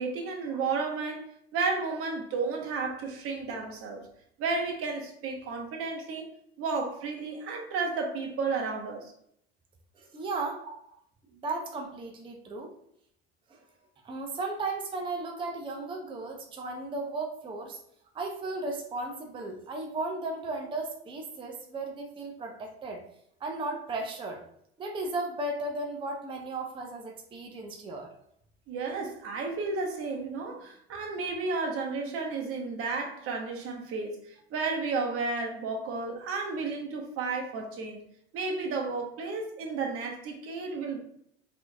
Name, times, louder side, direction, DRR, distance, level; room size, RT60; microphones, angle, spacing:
voice 1, 0.0-4.0 4.4-6.3 6.6-9.1 28.7-38.0 38.3-41.0, right 4 dB, 45° right, 0.9 m, -32 dB
voice 2, 10.0-10.6 11.3-12.7 14.0-17.8 18.1-23.0 23.4-24.4 24.8-28.1, right 2 dB, 15° right, 0.6 m, -35 dB
4.2 x 2.7 x 2.2 m
hypercardioid pair, 95°, 32 cm